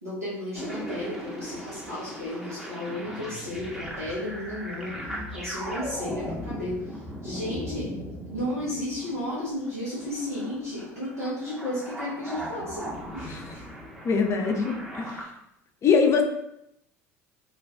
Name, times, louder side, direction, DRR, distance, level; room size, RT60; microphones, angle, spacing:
voice 1, 0.0-8.0 8.3-13.6 15.0-15.3, left 1 dB, 90° right, -11 dB, 0.9 m, -34 dB
sound 1, 0.5-15.2, equal, 5° right, 0.7 m, -38 dB
voice 2, 14.0-15.3 15.8-16.2, left 5 dB, 35° left, 4 dB, 0.5 m, -23 dB
2.5 x 2.2 x 3.4 m, 0.80 s
hypercardioid pair, 70°, 8 cm